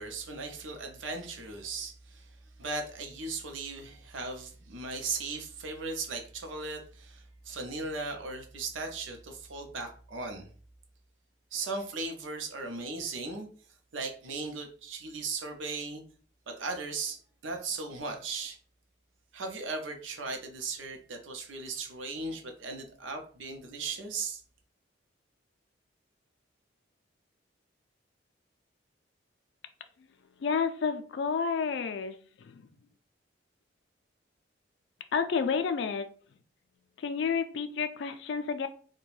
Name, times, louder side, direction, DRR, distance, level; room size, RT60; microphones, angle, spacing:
voice 1, 0.0-2.3 2.6-10.5 11.5-13.5 13.9-16.0 16.5-18.6 19.3-24.4, right 3 dB, 85° right, 4 dB, 0.6 m, -37 dB
voice 2, 30.4-32.7 35.1-36.1 37.0-38.7, left 5 dB, 70° left, 9 dB, 0.3 m, -30 dB
2.5 x 2.2 x 3.1 m, 0.43 s
head